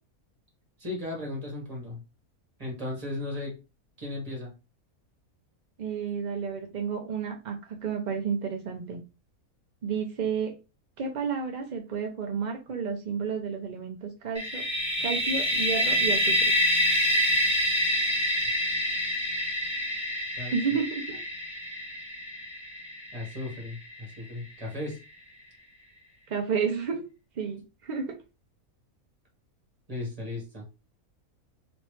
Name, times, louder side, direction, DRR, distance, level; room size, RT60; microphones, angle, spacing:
voice 1, 0.8-2.0 2.6-3.5 4.0-4.5 20.4-20.8 23.1-25.0 29.9-30.6, left 2 dB, 25° right, -1 dB, 1.6 m, -36 dB
voice 2, 5.8-9.0 9.8-10.5 11.0-14.6 15.0-16.5 20.5-21.2 26.3-27.0 27.4-28.2, right 6 dB, 60° right, 3 dB, 0.4 m, -31 dB
sound 1, 14.3-24.0, equal, 5° right, 1.3 m, -27 dB
3.2 x 3.0 x 3.1 m, 0.29 s
omnidirectional pair, 1.5 m